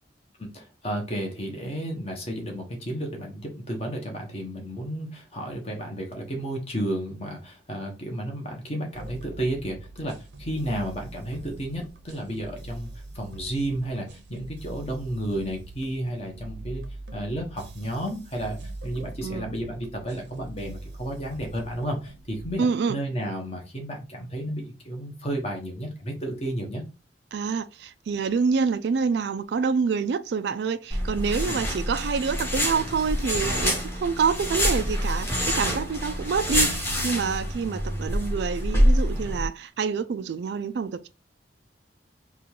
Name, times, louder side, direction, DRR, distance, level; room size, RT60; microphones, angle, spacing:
voice 1, 0.4-12.9 13.1-16.8 17.1-26.8 31.4-31.6, right 1 dB, 35° left, 1.1 m, -32 dB
sound 1, 8.9-22.5, right 2 dB, 85° right, 0.8 m, -42 dB
voice 2, 22.6-23.0 27.3-41.1, right 5 dB, 70° right, 0.3 m, -27 dB
sound 2, 30.9-39.5, equal, 15° left, 1.0 m, -26 dB
3.7 x 2.4 x 4.5 m
head